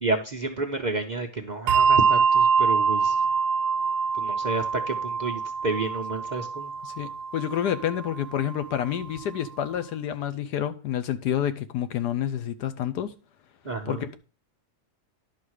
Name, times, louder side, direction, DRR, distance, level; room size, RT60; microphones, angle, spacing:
voice 1, 0.0-3.2 4.1-6.7 13.6-14.0, right 3 dB, 40° right, 0.6 m, -30 dB
Bell, 1.7-8.5, right 5 dB, 80° right, 1.2 m, -24 dB
voice 2, 6.8-13.1 13.9-14.2, left 10 dB, 80° left, 1.4 m, -29 dB
11.0 x 4.3 x 6.4 m
omnidirectional pair, 1.7 m